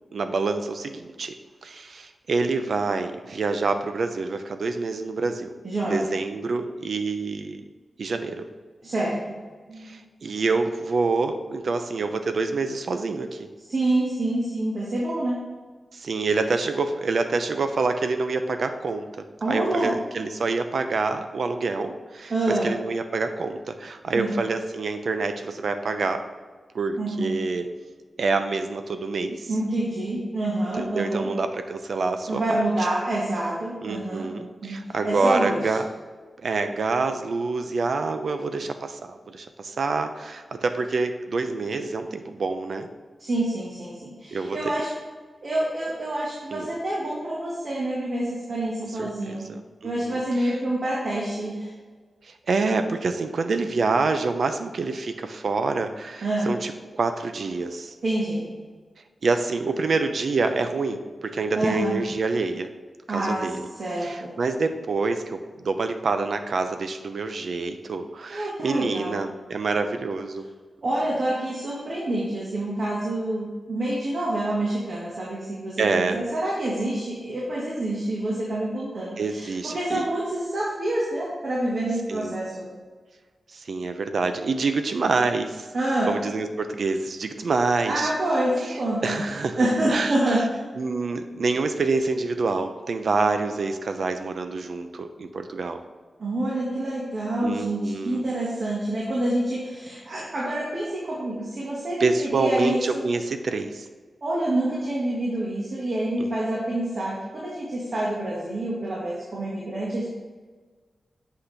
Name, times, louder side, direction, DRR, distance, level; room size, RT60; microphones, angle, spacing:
voice 1, 0.1-1.3 1.6-5.5 5.9-7.6 8.0-8.5 9.8-13.5 15.9-26.2 26.7-27.7 28.2-29.5 30.8-32.6 33.8-35.9 36.4-42.9 44.3-44.7 46.5-46.8 49.0-50.5 52.5-57.9 59.2-62.7 63.1-63.7 64.0-65.4 65.6-70.5 75.8-76.2 79.2-80.1 82.1-82.4 83.5-85.7 86.1-88.1 89.0-89.5 89.9-90.4 90.8-95.8 97.4-98.2 102.0-103.8 106.2-106.3, right 3 dB, 65° right, 8 dB, 0.6 m, -27 dB
voice 2, 5.6-6.1 8.8-9.1 9.7-10.0 13.7-15.4 19.4-19.9 22.3-22.7 24.1-24.3 27.0-27.3 29.5-31.3 32.3-34.3 34.6-34.8 35.0-35.7 43.2-44.9 45.4-49.5 49.8-51.7 56.2-56.5 58.0-58.5 61.5-62.0 63.1-63.5 63.8-64.3 68.3-69.2 70.8-82.7 85.7-86.1 87.8-89.2 89.6-90.6 96.2-103.0 104.2-110.1, right 1 dB, 50° right, -5 dB, 1.6 m, -27 dB
8.3 x 5.8 x 3.4 m, 1.4 s
wide cardioid pair, 125°, 0 cm